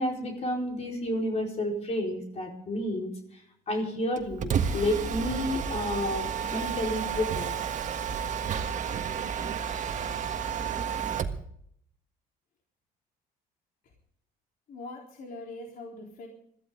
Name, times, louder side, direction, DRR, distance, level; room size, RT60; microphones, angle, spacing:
voice 1, 0.0-7.5, left 1 dB, 40° left, 0 dB, 4.6 m, -31 dB
Mechanisms, 4.2-11.4, right 7 dB, 45° right, 1.5 m, -31 dB
voice 2, 14.7-16.3, left 2 dB, 60° left, 0 dB, 3.8 m, -42 dB
21.5 x 14.5 x 3.9 m, 0.66 s
cardioid pair, 110°, 17 cm